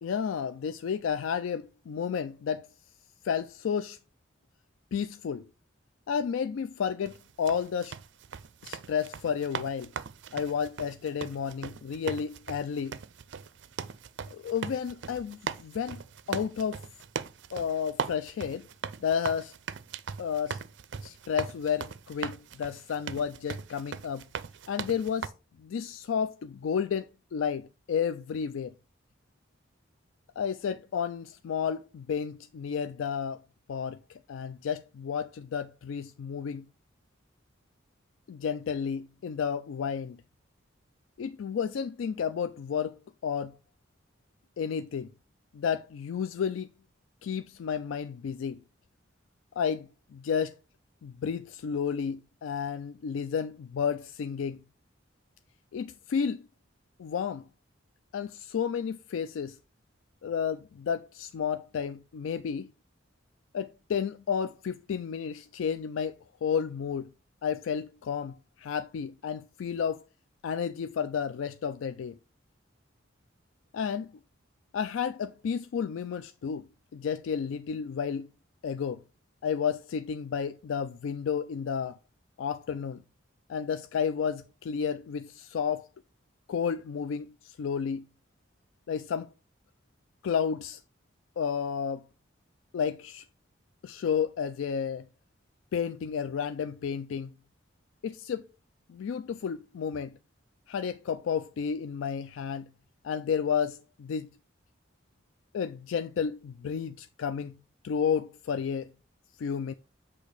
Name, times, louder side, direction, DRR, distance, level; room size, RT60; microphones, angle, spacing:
voice 1, 0.0-2.7 3.2-4.0 4.9-5.5 6.1-7.9 8.6-9.9 10.3-13.0 14.3-16.0 16.3-16.8 17.5-18.7 19.0-19.5 20.2-20.6 21.0-24.2 24.7-25.3 25.6-28.7 30.4-33.4 33.7-36.7 38.3-40.2 41.2-43.0 43.2-43.6 44.6-45.1 45.5-46.7 47.2-48.6 49.6-50.6 51.0-54.6 55.7-56.5 57.0-57.4 58.1-59.6 60.2-62.7 63.5-67.1 67.4-70.0 70.4-72.2 73.7-74.1 74.7-76.7 76.9-78.3 78.6-79.0 79.4-82.0 82.4-83.0 83.5-85.9 86.5-88.0 88.9-89.3 90.2-90.8 91.4-92.0 92.7-93.2 93.8-95.1 95.7-97.3 98.0-98.4 98.9-100.2 100.7-102.7 103.0-104.3 105.5-107.6 107.8-108.9 109.4-109.7, left 7 dB, 80° left, 0.3 m, -31 dB
sound 1, 7.1-25.3, right 6 dB, 60° right, 0.4 m, -39 dB
8.2 x 2.9 x 4.8 m
head